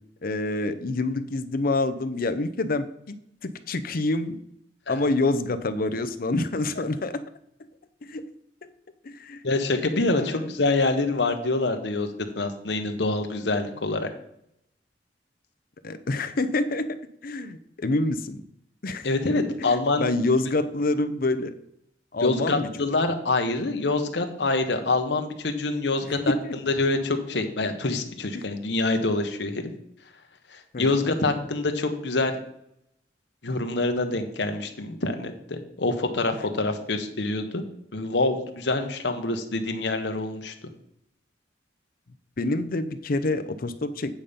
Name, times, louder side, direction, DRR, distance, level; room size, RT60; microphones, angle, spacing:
voice 1, 0.2-3.1 3.4-4.4 4.9-7.2 8.0-8.2 9.0-9.4 10.1-10.5 15.8-17.0 17.2-18.4 18.8-21.5 22.1-22.7 26.4-26.5 28.3-28.5 30.7-30.9 42.4-44.2, left 2 dB, 55° left, 10 dB, 0.7 m, -27 dB
voice 2, 9.4-12.1 12.4-14.1 19.0-20.2 22.2-29.7 30.5-32.4 33.4-37.6 37.9-40.5, left 2 dB, 70° left, 6 dB, 1.1 m, -26 dB
9.0 x 5.5 x 5.2 m, 0.75 s
head